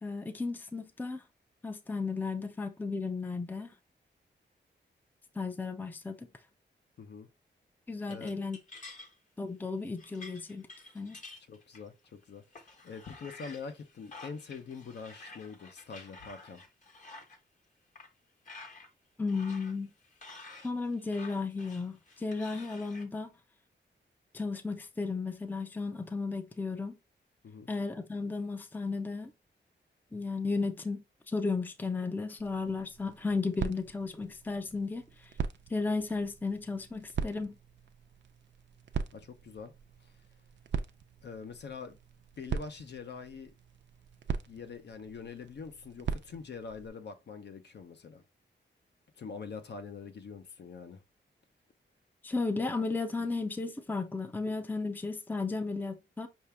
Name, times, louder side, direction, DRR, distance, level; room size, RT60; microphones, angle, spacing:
voice 1, 0.0-1.2 1.6-3.7 5.4-6.3 7.9-8.6 9.4-10.7 10.9-11.2 19.2-19.9 20.6-23.3 24.3-27.0 27.7-29.3 30.1-35.3 35.7-37.6 52.2-56.3, left 4 dB, 10° left, 0.5 m, -34 dB
voice 2, 7.0-7.3 8.1-8.3 11.5-16.6 27.4-27.7 39.1-39.7 40.0-40.1 41.2-42.0 42.4-43.5 44.5-48.2 49.2-51.0, left 5 dB, 65° left, 0.8 m, -44 dB
sound 1, 8.1-9.1 9.6-9.7 10.0-12.1 12.5-17.4 18.0-18.1 18.5-18.9 19.3-23.0, left 3 dB, 40° left, 1.1 m, -50 dB
sound 2, 32.4-46.9, right 6 dB, 70° right, 0.5 m, -41 dB
5.7 x 2.7 x 3.4 m
wide cardioid pair, 155°, 19 cm